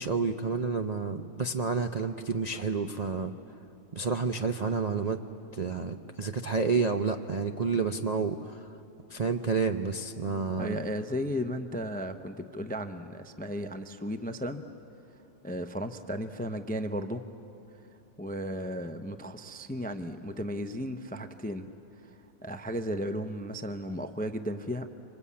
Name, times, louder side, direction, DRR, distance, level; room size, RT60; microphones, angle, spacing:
voice 1, 0.0-3.3 3.9-5.2 5.5-8.6 9.1-10.8, right 4 dB, 45° right, 6 dB, 0.5 m, -30 dB
voice 2, 10.6-14.6 15.4-17.2 18.2-21.7 22.4-24.9, equal, 10° left, 8 dB, 0.4 m, -35 dB
26.0 x 25.5 x 8.5 m, 2.8 s
omnidirectional pair, 1.7 m